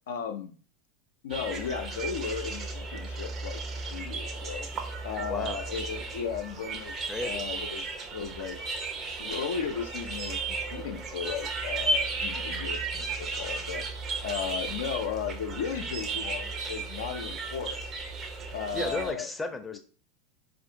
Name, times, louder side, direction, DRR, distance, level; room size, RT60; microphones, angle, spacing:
voice 1, 0.1-0.5 1.2-3.6 3.9-4.7 5.0-8.6 9.2-13.9 14.2-17.9 18.5-19.3 19.7-19.8, left 7 dB, 75° left, 6 dB, 0.4 m, -35 dB
sound 1, 1.3-19.1, right 3 dB, 40° right, 0.7 m, -34 dB
voice 2, 5.3-5.6 7.1-7.5 18.7-19.8, left 2 dB, 15° left, 7 dB, 0.6 m, -34 dB
4.2 x 2.5 x 2.7 m, 0.39 s
hypercardioid pair, 85°, 0 cm